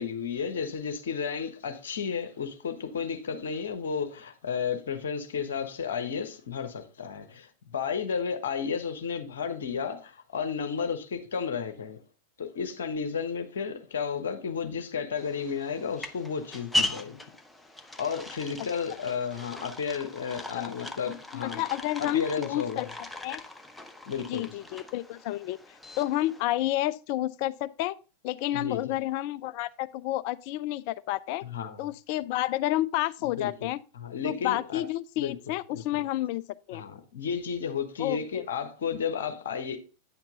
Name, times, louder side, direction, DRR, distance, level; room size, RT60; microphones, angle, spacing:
voice 1, 0.0-12.0 12.4-17.2 18.0-21.6 22.0-22.9 24.1-24.5 28.5-28.9 31.4-31.8 33.4-33.7 33.9-34.8 35.2-35.4 35.7-36.0 36.7-39.8, left 6 dB, 65° left, 1.2 m, -33 dB
sound 1, 15.2-26.4, left 1 dB, 5° left, 0.8 m, -38 dB
voice 2, 21.3-22.9 23.2-23.4 24.3-27.9 28.2-31.4 31.8-33.8 34.2-36.4 36.7-36.8 38.0-38.4, left 15 dB, 45° left, 0.3 m, -30 dB
9.3 x 5.9 x 3.8 m
figure-of-eight pair, 90°, 0 cm